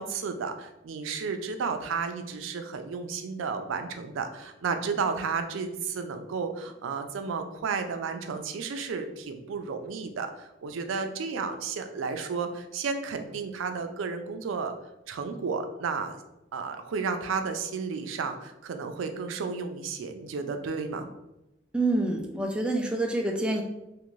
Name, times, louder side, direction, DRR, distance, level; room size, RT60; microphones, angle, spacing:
voice 1, 0.0-14.7 15.1-16.2 16.5-21.1, right 5 dB, 85° right, 7 dB, 0.4 m, -32 dB
voice 2, 21.7-23.6, right 2 dB, 5° right, 1 dB, 0.3 m, -27 dB
2.5 x 2.5 x 3.0 m, 0.91 s
head